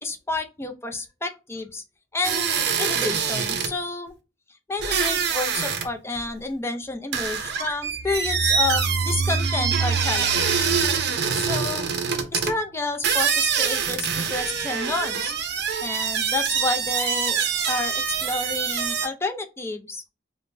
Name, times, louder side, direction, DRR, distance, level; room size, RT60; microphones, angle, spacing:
voice 1, 0.0-1.8 2.1-2.5 2.8-4.2 4.7-10.7 11.4-11.9 12.3-15.3 15.8-20.0, left 3 dB, 15° left, 5 dB, 0.4 m, -30 dB
sound 1, 2.2-3.7 4.8-5.9 6.2-6.3 7.1-12.5 13.0-19.1, right 6 dB, 60° right, 0.6 m, -25 dB
sound 2, 8.0-12.5, right 3 dB, 25° right, 0.8 m, -29 dB
5.0 x 2.1 x 2.5 m, 0.29 s
head